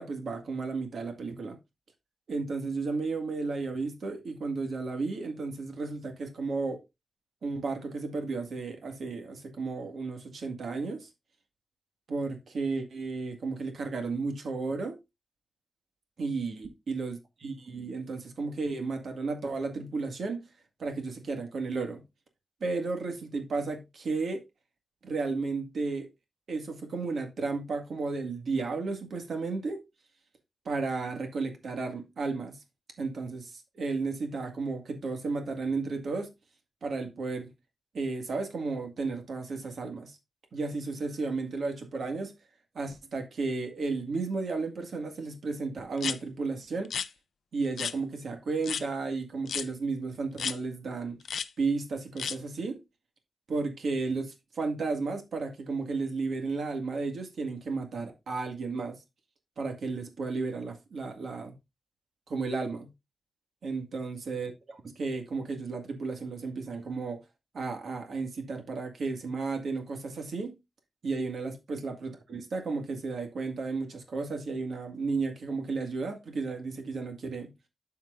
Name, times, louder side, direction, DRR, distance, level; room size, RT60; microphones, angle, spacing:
voice 1, 0.0-1.6 2.3-6.8 7.4-11.1 12.1-15.0 16.2-20.5 20.8-22.0 22.6-24.4 25.0-26.1 26.5-29.8 30.7-32.6 33.0-33.5 33.8-36.3 36.8-37.5 37.9-40.2 40.5-42.3 42.8-46.9 47.5-51.2 51.6-52.8 53.5-59.0 59.6-61.5 62.3-62.9 63.6-67.2 67.5-70.6 71.0-77.5, right 4 dB, 70° right, 1.9 m, -33 dB
sound 1, 46.0-46.2 46.8-47.1 47.8-48.0 48.6-48.8 49.5-49.7 50.4-50.6 51.2-51.5 52.2-52.4, left 7 dB, 85° left, 0.5 m, -32 dB
12.5 x 4.7 x 2.5 m
wide cardioid pair, 125°, 0 cm